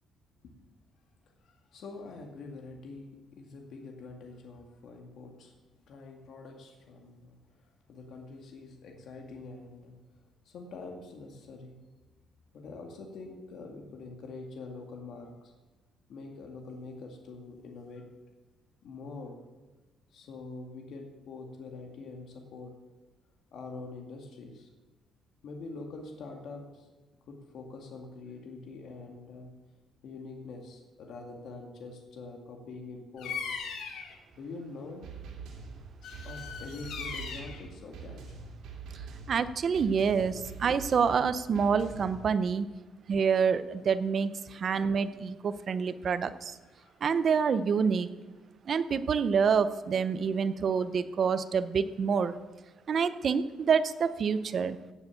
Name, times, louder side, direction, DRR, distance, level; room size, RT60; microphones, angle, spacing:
voice 1, 1.4-5.5 5.9-10.0 10.5-11.8 12.5-15.5 16.1-18.1 18.8-19.4 20.1-22.7 23.5-24.7 25.4-26.9 27.3-29.5 30.0-33.5 34.3-35.1 36.2-38.2 46.4-46.5 46.8-47.0, left 3 dB, 60° left, 2 dB, 1.9 m, -45 dB
Bird vocalization bird call bird song, 33.2-34.2 36.0-37.6, left 6 dB, 90° left, 2.0 m, -39 dB
sound 1, 35.0-42.2, right 5 dB, 75° right, 3.2 m, -44 dB
voice 2, 39.3-42.7 43.1-46.6 47.0-48.1 48.7-52.3 52.9-54.8, right 6 dB, 40° right, 13 dB, 0.7 m, -27 dB
17.0 x 6.9 x 7.0 m, 1.2 s
cardioid pair, 160°, 0 cm